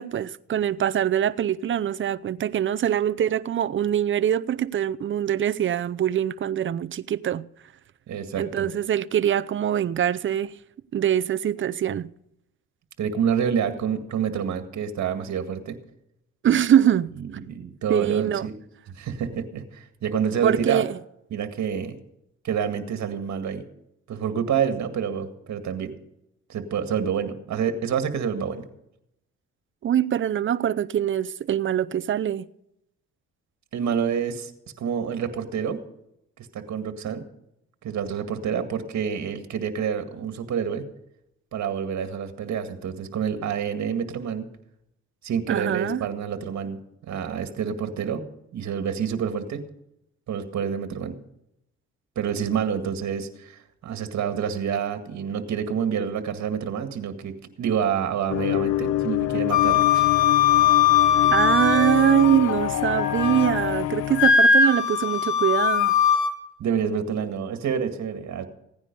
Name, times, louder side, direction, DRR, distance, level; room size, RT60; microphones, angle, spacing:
voice 1, 0.0-7.4 8.4-10.5 10.9-12.1 16.4-17.1 17.9-18.4 20.4-21.0 29.8-32.4 45.5-46.0 61.3-65.9, right 10 dB, 40° right, 0.6 m, -23 dB
voice 2, 8.1-8.7 13.0-15.8 17.5-18.5 18.9-20.8 21.3-22.0 22.4-23.6 24.1-25.9 26.5-28.7 33.7-34.5 34.8-35.8 36.5-37.2 37.8-40.8 41.5-44.5 45.2-48.2 48.5-49.6 50.3-51.2 52.2-60.1 66.6-68.5, right 7 dB, 65° right, 2.0 m, -28 dB
sound 1, 58.3-64.4, left 13 dB, 55° left, 0.6 m, -26 dB
Wind instrument woodwind instrument, 59.5-62.5 62.9-63.6 64.1-66.3, left 7 dB, 70° left, 1.4 m, -20 dB
16.5 x 9.8 x 5.4 m
cardioid pair, 90°, 30 cm